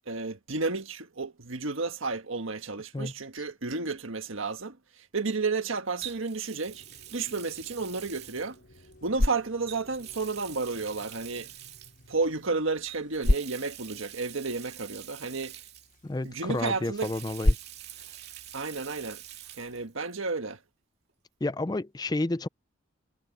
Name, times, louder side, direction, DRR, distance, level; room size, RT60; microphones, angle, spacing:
voice 1, 0.1-4.8 5.1-6.8 7.1-8.6 9.0-11.5 12.1-15.5 16.2-17.1 18.5-19.2 19.6-20.6, right 3 dB, 80° right, 1.6 m, -32 dB
Water tap faucet, 3.0-3.3 6.0-9.1 9.6-12.1 12.9-16.3 16.6-19.8 20.1-20.2 21.8-21.9, right 13 dB, 50° right, 2.8 m, -46 dB
sound 1, 6.7-12.5, left 1 dB, 60° left, 3.1 m, -56 dB
sound 2, 8.8-19.9, left 1 dB, 40° left, 0.9 m, -34 dB
voice 2, 16.0-17.6 21.4-22.5, left 2 dB, 20° left, 0.4 m, -31 dB
head